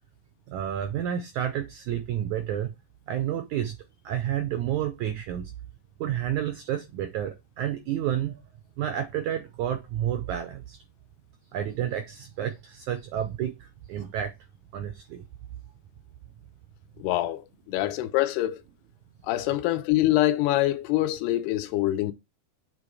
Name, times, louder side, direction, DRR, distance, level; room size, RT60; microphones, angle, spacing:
voice 1, 0.5-2.7 3.1-3.8 4.0-5.5 6.0-8.4 8.8-10.8 11.5-14.3 14.7-15.2, right 10 dB, 90° right, 1.7 m, -30 dB
voice 2, 17.0-18.6 19.3-22.1, left 15 dB, 90° left, 2.8 m, -25 dB
8.0 x 3.8 x 4.8 m
omnidirectional pair, 4.5 m